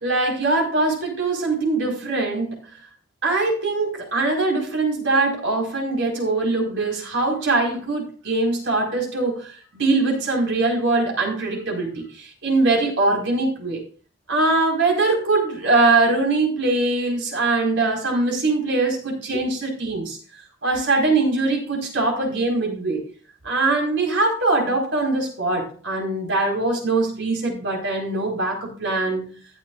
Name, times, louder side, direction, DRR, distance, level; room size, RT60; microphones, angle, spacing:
voice 1, 0.0-2.7 3.2-13.8 14.3-20.2 20.6-23.1 23.4-29.4, right 3 dB, 75° right, 0 dB, 4.6 m, -22 dB
14.5 x 10.5 x 2.5 m, 0.40 s
head